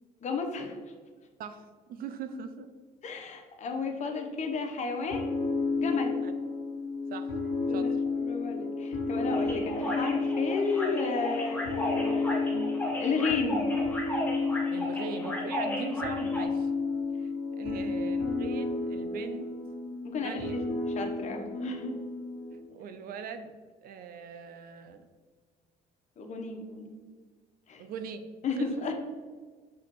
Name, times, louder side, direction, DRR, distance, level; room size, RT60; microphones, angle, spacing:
voice 1, 0.2-0.8 3.0-5.3 5.8-6.2 7.7-12.7 13.0-13.7 20.0-21.9 26.2-27.0 27.7-27.8 28.4-29.0, left 4 dB, 45° left, 4 dB, 0.7 m, -33 dB
voice 2, 1.4-2.7 6.2-6.3 7.1-7.3 7.7-8.0 14.7-16.7 17.2-17.3 17.6-19.5 20.2-20.6 22.5-23.5 23.8-25.1 27.8-28.2 28.5-28.7, right 6 dB, 60° right, 9 dB, 0.4 m, -41 dB
sound 1, 5.1-22.6, left 3 dB, 80° left, 1.2 m, -32 dB
sound 2, 9.3-16.5, left 1 dB, 10° left, 0.9 m, -35 dB
6.0 x 2.9 x 2.9 m, 1.5 s
cardioid pair, 110°, 17 cm